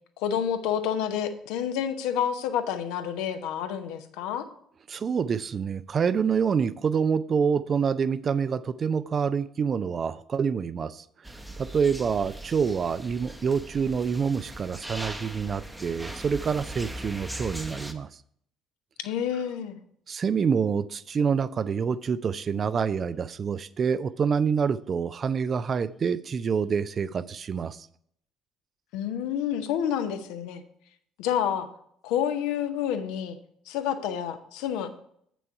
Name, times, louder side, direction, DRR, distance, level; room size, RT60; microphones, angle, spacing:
voice 1, 0.2-4.5 19.0-19.8 28.9-30.6 31.2-31.7 32.0-33.4 33.7-34.9, left 9 dB, 60° left, 9 dB, 0.7 m, -29 dB
voice 2, 4.9-11.0 11.6-18.1 20.1-27.9, right 6 dB, 40° right, 17 dB, 0.4 m, -27 dB
sound 1, 11.2-17.9, right 1 dB, 5° right, 0.8 m, -39 dB
8.1 x 6.1 x 4.7 m, 0.68 s
figure-of-eight pair, 50°, 0 cm